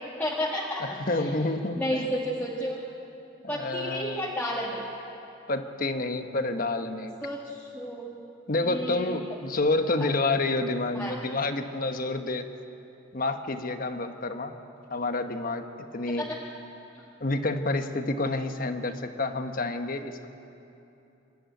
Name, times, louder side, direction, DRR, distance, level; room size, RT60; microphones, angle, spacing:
voice 1, 0.2-1.3 1.8-2.8 3.5-4.8 7.2-8.1 8.6-9.2 10.0-10.1 10.9-11.1 16.2-16.4 16.9-17.0, equal, 10° left, -6 dB, 1.7 m, -32 dB
voice 2, 0.8-2.1 3.4-4.2 5.5-7.1 8.5-12.5 13.1-14.5 14.9-15.6 15.9-16.3 17.2-20.3, left 2 dB, 45° left, 7 dB, 1.1 m, -29 dB
26.5 x 12.0 x 9.2 m, 2.9 s
head